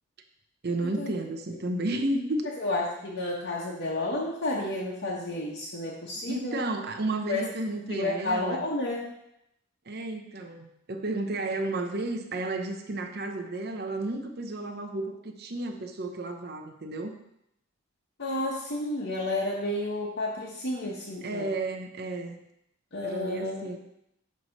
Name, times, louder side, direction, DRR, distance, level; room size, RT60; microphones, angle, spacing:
voice 1, 0.6-2.5 6.3-8.6 9.9-17.2 21.2-22.4 23.0-23.8, right 2 dB, 50° right, 4 dB, 0.8 m, -32 dB
voice 2, 2.6-6.6 7.3-7.4 7.9-9.1 18.2-21.5 22.9-23.7, left 2 dB, 55° left, -6 dB, 1.2 m, -31 dB
9.3 x 3.3 x 6.4 m, 0.79 s
head